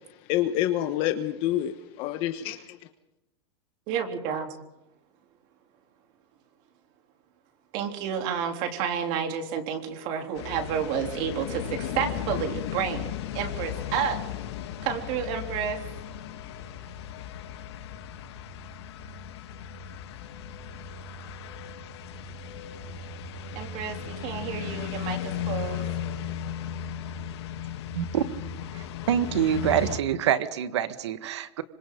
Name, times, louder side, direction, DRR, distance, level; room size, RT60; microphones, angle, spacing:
voice 1, 0.3-2.8, left 13 dB, 40° left, 1.3 m, -27 dB
voice 2, 3.9-4.6 7.7-14.2 14.8-15.8 23.5-25.8, right 7 dB, 40° right, 3.4 m, -30 dB
sound 1, 10.4-30.0, left 8 dB, 70° left, 3.0 m, -36 dB
voice 3, 27.9-28.3 28.7-31.6, right 10 dB, 80° right, 1.7 m, -26 dB
27.0 x 25.5 x 3.9 m
supercardioid pair, 160°, 14 cm